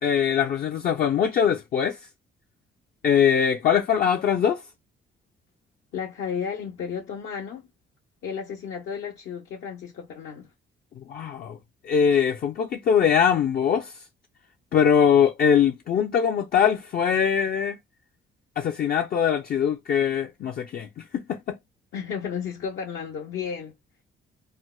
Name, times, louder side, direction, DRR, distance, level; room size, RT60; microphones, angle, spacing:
voice 1, 0.0-2.0 3.0-4.6 11.1-11.6 11.8-13.9 14.7-17.8 18.6-20.9 21.1-21.4, left 8 dB, 50° left, 0.4 m, -22 dB
voice 2, 5.9-7.6 8.2-10.5 21.9-23.7, left 7 dB, 80° left, 0.8 m, -33 dB
4.2 x 2.1 x 2.2 m
cardioid pair, 90°, 20 cm